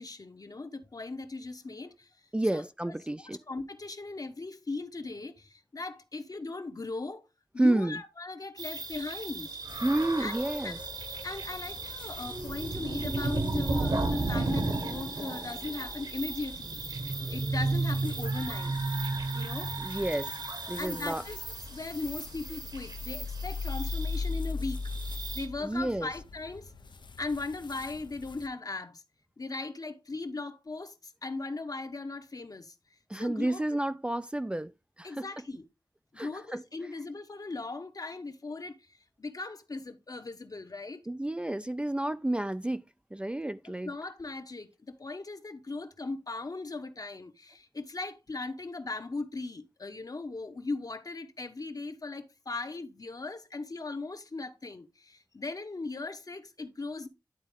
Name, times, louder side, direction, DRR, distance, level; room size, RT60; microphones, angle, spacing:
voice 1, 0.0-2.2 2.5-2.6 3.2-7.2 7.5-9.5 10.2-10.3 10.6-10.8 11.2-18.7 19.3-19.7 20.7-21.4 21.7-24.8 25.3-26.7 27.2-29.0 29.4-33.8 35.0-35.7 36.1-41.0 43.8-57.1, left 3 dB, 50° left, 0.9 m, -38 dB
voice 2, 2.3-3.4 7.6-8.0 9.8-10.8 19.8-20.4 20.7-21.2 25.6-26.1 33.1-34.7 35.0-35.3 36.2-36.6 41.1-43.9, right 1 dB, 15° right, 0.3 m, -30 dB
sound 1, 8.6-25.5, right 3 dB, 65° right, 1.4 m, -34 dB
sound 2, 9.7-28.5, left 4 dB, 85° left, 0.7 m, -42 dB
11.0 x 4.1 x 3.5 m
wide cardioid pair, 75°, 8 cm